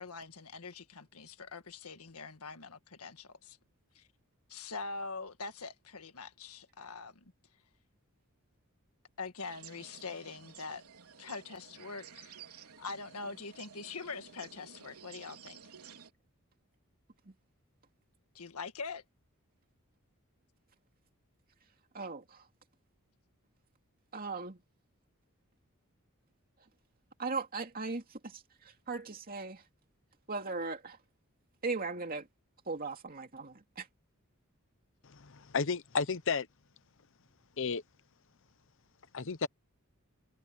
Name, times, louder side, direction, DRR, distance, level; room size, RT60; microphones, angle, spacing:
voice 1, 0.0-3.6 4.0-4.1 4.5-7.3 9.2-10.8 11.2-15.6 18.4-19.0, left 4 dB, 90° left, 1.7 m, -43 dB
sound 1, 9.4-16.1, right 7 dB, 90° right, 3.9 m, -53 dB
voice 2, 21.9-22.5 24.1-24.6 27.2-29.6 30.3-31.0 31.6-32.3 32.7-33.9, right 3 dB, 40° right, 2.5 m, -38 dB
voice 3, 35.0-36.5 37.6-37.8 39.1-39.5, left 5 dB, 60° left, 0.9 m, -32 dB
head